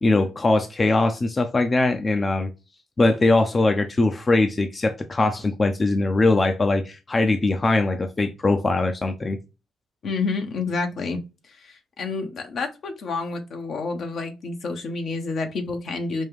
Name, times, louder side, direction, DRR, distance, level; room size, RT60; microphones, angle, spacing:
voice 1, 0.0-2.5 3.0-9.4, left 2 dB, 35° left, 0.6 m, -21 dB
voice 2, 10.0-11.2 11.5-16.3, left 3 dB, 65° left, 0.9 m, -29 dB
5.3 x 2.3 x 3.5 m
supercardioid pair, 55°, 0 cm